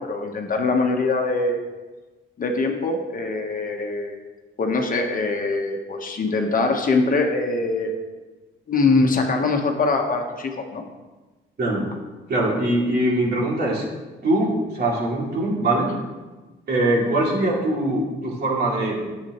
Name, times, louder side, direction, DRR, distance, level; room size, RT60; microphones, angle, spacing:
voice 1, 0.0-1.6 2.4-4.1 4.6-7.9 8.7-10.8, left 3 dB, 45° left, 3 dB, 1.2 m, -23 dB
voice 2, 12.3-13.8 14.2-15.9 16.7-19.1, right 1 dB, 55° right, -4 dB, 2.7 m, -22 dB
10.0 x 7.7 x 3.1 m, 1.2 s
cardioid pair, 90°, 20 cm